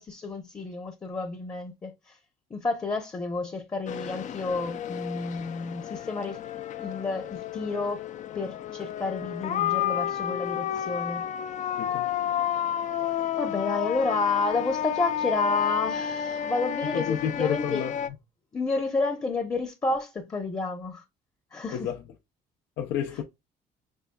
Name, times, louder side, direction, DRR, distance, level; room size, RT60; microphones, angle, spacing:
voice 1, 0.0-2.2 2.5-6.4 6.8-8.1 8.3-11.3 13.4-17.8 18.5-21.0 21.5-21.9, left 3 dB, 20° left, 0.8 m, -30 dB
sound 1, 3.9-18.1, left 10 dB, 45° left, 0.5 m, -31 dB
voice 2, 11.8-12.1 16.9-17.9 21.7-22.0 22.8-23.2, left 9 dB, 80° left, 0.7 m, -30 dB
5.5 x 3.3 x 2.3 m
cardioid pair, 110°, 17 cm